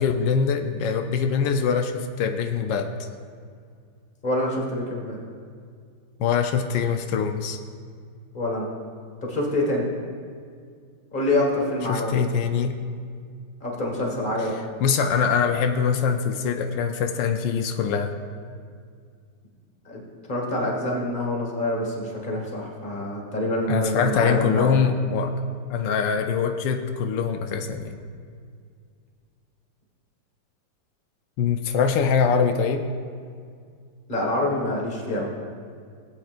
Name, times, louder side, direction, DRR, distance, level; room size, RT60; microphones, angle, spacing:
voice 1, 0.0-2.9 6.2-7.6 11.9-12.8 14.8-18.1 23.7-25.3 25.7-28.0 31.4-32.8, left 6 dB, 85° left, 5 dB, 1.3 m, -23 dB
voice 2, 4.2-5.2 8.3-8.7 9.2-9.9 11.1-12.1 13.6-14.5 19.9-20.0 20.3-24.7 34.1-35.3, left 1 dB, 30° left, -1 dB, 1.8 m, -26 dB
18.0 x 8.6 x 2.5 m, 2.1 s
omnidirectional pair, 1.9 m